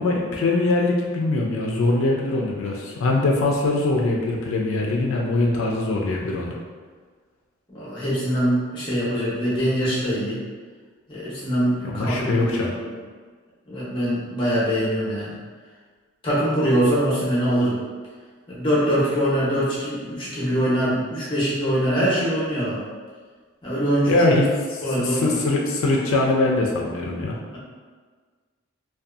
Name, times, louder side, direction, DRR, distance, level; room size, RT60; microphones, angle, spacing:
voice 1, 0.0-6.6 11.8-12.7 24.1-27.4, left 2 dB, 80° left, -1 dB, 0.3 m, -22 dB
voice 2, 7.7-10.4 11.1-12.9 13.7-15.3 16.2-17.8 18.5-22.8 23.6-24.2 24.8-25.3, equal, 25° left, -7 dB, 0.7 m, -23 dB
2.6 x 2.2 x 2.4 m, 1.5 s
head